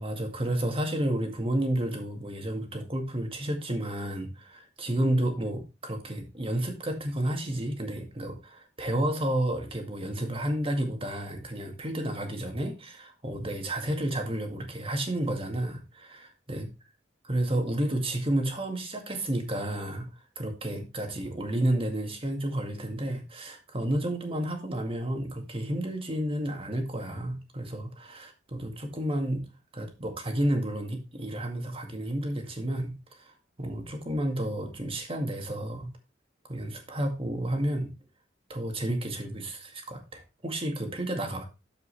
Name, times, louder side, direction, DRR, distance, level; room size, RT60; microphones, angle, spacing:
voice 1, 0.0-16.7 17.2-20.1 20.4-29.5 29.7-35.9 36.5-37.9 38.5-41.4, right 1 dB, 30° right, 4 dB, 2.1 m, -31 dB
13.0 x 5.5 x 3.4 m, 0.27 s
head